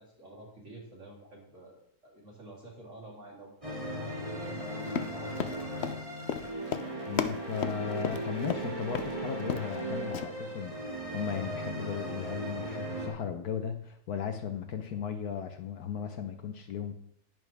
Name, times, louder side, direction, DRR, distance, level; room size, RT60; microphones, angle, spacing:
voice 1, 0.0-5.6, right 2 dB, 50° right, -3 dB, 3.8 m, -50 dB
sound 1, 3.6-13.1, right 1 dB, 20° right, 2.8 m, -37 dB
Run, 4.9-8.6 9.0-9.1 9.4-9.8 10.1-10.3, left 8 dB, 60° left, 0.7 m, -34 dB
voice 2, 7.1-16.9, left 7 dB, 75° left, 6 dB, 1.5 m, -36 dB
10.5 x 10.5 x 3.5 m, 0.65 s
omnidirectional pair, 1.6 m